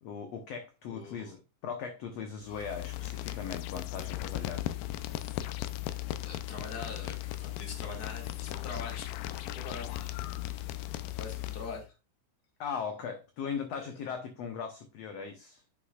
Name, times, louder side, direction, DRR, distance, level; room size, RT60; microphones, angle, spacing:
voice 1, 0.0-4.7 12.6-15.6, left 6 dB, 65° left, 1.8 m, -39 dB
voice 2, 0.9-1.3 6.3-10.3 10.9-11.9 13.8-13.9, left 4 dB, 30° left, 2.2 m, -44 dB
sound 1, 2.5-11.9, left 15 dB, 85° left, 2.4 m, -37 dB
9.9 x 6.9 x 2.4 m
omnidirectional pair, 3.9 m